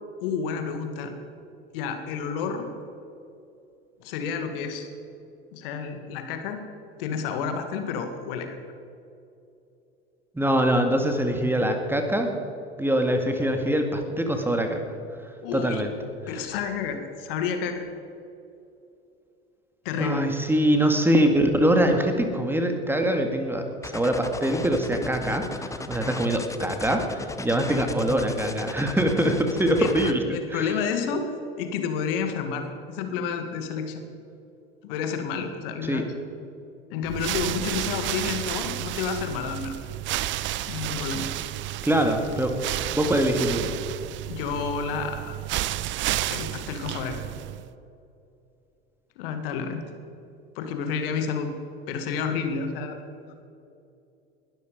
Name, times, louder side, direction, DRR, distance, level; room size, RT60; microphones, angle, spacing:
voice 1, 0.2-1.1 1.7-2.7 4.0-4.9 5.5-6.6 7.0-8.6 15.4-15.8 16.3-17.8 19.8-20.3 29.8-34.0 34.8-36.1 36.9-39.8 40.7-41.3 44.2-45.4 46.3-47.2 49.2-49.8 50.6-51.5 51.9-53.0, left 6 dB, 60° left, 7 dB, 2.0 m, -30 dB
voice 2, 10.3-12.3 12.8-14.8 15.5-15.9 20.0-30.2 30.5-30.7 35.8-36.0 41.8-42.5 42.9-43.7, right 1 dB, 5° right, 5 dB, 2.1 m, -23 dB
sound 1, 23.8-30.1, left 3 dB, 10° left, 1.0 m, -36 dB
sound 2, 37.0-47.7, right 14 dB, 40° right, 0.7 m, -31 dB
20.5 x 13.0 x 5.3 m, 2.7 s
hypercardioid pair, 80°, 31 cm